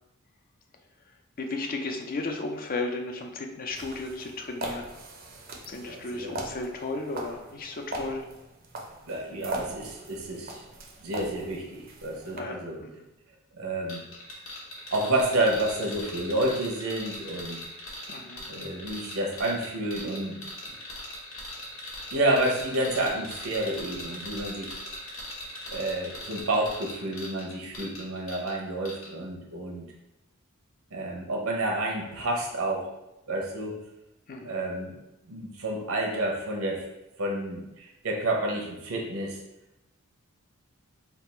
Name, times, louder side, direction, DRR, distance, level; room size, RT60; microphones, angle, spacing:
voice 1, 1.4-4.9 5.7-8.2 12.3-12.9 18.1-18.4 34.3-34.6, left 3 dB, 40° left, 4 dB, 0.4 m, -34 dB
sound 1, 3.7-12.4, right 1 dB, 40° right, 0.5 m, -40 dB
voice 2, 5.8-6.4 9.1-10.6 11.0-12.8 13.5-14.0 14.9-17.6 18.5-20.4 22.1-24.8 25.7-29.9 30.9-32.9 33.3-33.8 34.4-35.0 35.2-36.8 37.2-39.4, right 1 dB, 70° right, 0 dB, 0.8 m, -29 dB
sound 2, 13.9-28.6 28.8-29.1, left 1 dB, 65° left, 1.2 m, -40 dB
3.5 x 2.4 x 4.4 m, 0.93 s
head